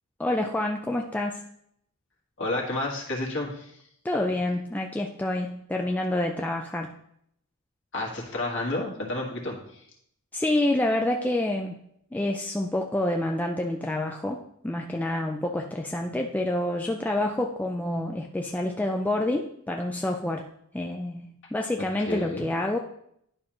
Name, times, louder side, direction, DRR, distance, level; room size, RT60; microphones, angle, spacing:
voice 1, 0.2-1.4 4.0-7.0 10.3-11.8 12.1-20.5 20.7-22.8, left 1 dB, 5° left, 2 dB, 0.3 m, -28 dB
voice 2, 2.4-3.7 7.9-9.6 22.1-22.5, left 2 dB, 60° left, -2 dB, 1.6 m, -30 dB
10.5 x 5.0 x 3.0 m, 0.72 s
head